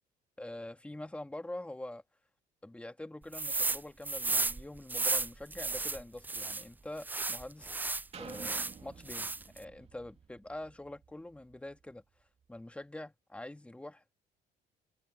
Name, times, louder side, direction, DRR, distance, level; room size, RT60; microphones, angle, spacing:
voice 1, 0.4-2.0 2.6-7.8 8.2-9.3 9.5-12.0 12.5-14.1, left 1 dB, 5° left, 1.9 m, -45 dB
sound 1, 3.3-3.8 4.0-6.6 7.0-8.7 9.1-9.6, right 3 dB, 10° right, 0.3 m, -33 dB
sound 2, 8.1-11.9 12.4-12.5, right 6 dB, 40° right, 2.7 m, -52 dB
cardioid pair, 110°, 17 cm